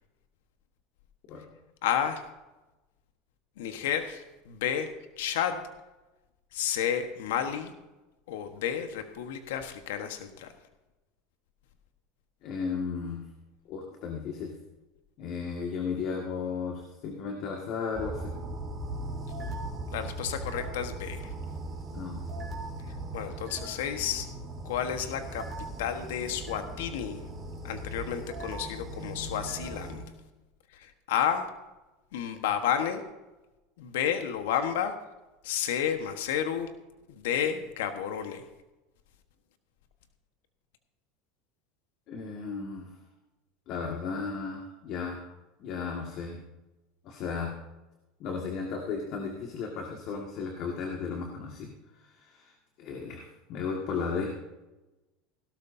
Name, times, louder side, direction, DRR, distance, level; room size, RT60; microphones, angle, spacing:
voice 1, 1.8-2.3 3.6-4.9 5.2-5.7 6.5-7.7 8.3-10.5 19.9-21.3 23.1-24.3 24.6-25.5 25.8-27.2 27.6-30.0 30.7-31.5 32.1-33.0 33.8-34.9 35.4-36.7 37.2-38.4, left 9 dB, 80° left, 7 dB, 1.3 m, -31 dB
voice 2, 12.4-13.2 13.7-14.5 15.2-18.3 21.9-22.2 23.3-23.4 42.1-42.9 43.7-45.3 45.6-46.4 47.0-47.5 48.2-51.7 52.0-52.5 52.8-53.2 53.5-54.3, left 5 dB, 55° left, 1 dB, 1.9 m, -34 dB
sound 1, 17.9-30.0, right 1 dB, 20° right, 3.4 m, -38 dB
16.5 x 12.5 x 2.8 m, 1.1 s
supercardioid pair, 110°, 0 cm